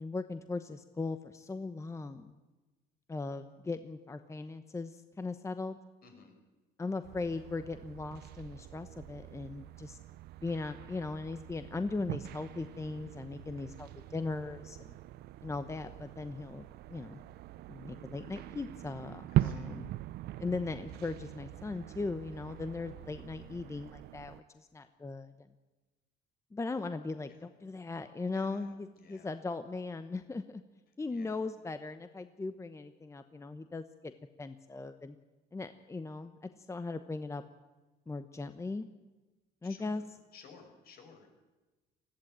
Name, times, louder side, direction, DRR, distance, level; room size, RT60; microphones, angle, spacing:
voice 1, 0.0-2.3 3.1-5.8 6.8-10.0 10.4-15.0 15.4-17.2 17.7-19.9 20.4-25.3 26.5-30.6 31.0-34.1 34.4-35.2 35.5-37.4 38.1-38.9 39.6-40.0, left 3 dB, 15° left, 10 dB, 1.0 m, -38 dB
voice 2, 6.0-6.4 19.3-19.8 27.3-27.4 28.3-29.3 31.1-31.4 39.6-40.0 40.3-41.3, left 5 dB, 65° left, 4 dB, 5.4 m, -56 dB
sound 1, 7.0-24.4, right 14 dB, 75° right, 0.6 m, -41 dB
20.5 x 15.0 x 8.8 m, 1.2 s
cardioid pair, 110°, 17 cm